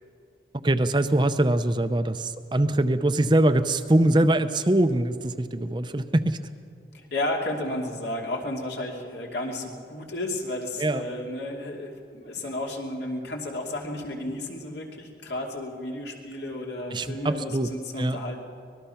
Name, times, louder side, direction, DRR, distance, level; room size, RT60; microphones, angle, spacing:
voice 1, 0.6-6.4 10.8-11.1 16.9-17.7 18.0-18.2, right 1 dB, 25° right, 10 dB, 0.6 m, -23 dB
voice 2, 6.9-18.4, left 1 dB, 75° left, 0 dB, 2.8 m, -32 dB
24.5 x 20.0 x 5.8 m, 2.3 s
head